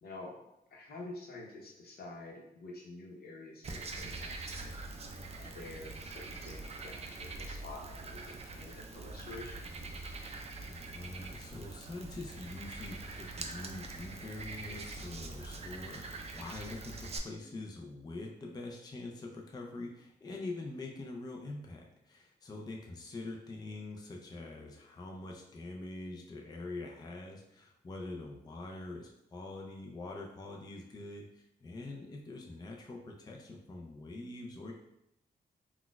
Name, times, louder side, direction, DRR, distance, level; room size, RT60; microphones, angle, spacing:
voice 1, 0.0-0.4 0.7-4.7 5.4-9.7, left 2 dB, 70° left, -1 dB, 0.8 m, -48 dB
Frog, 3.6-17.2, right 3 dB, 40° right, 0.4 m, -44 dB
voice 2, 10.6-34.7, left 2 dB, 25° left, 0 dB, 0.4 m, -44 dB
4.1 x 2.2 x 2.3 m, 0.84 s
cardioid pair, 100°, 17 cm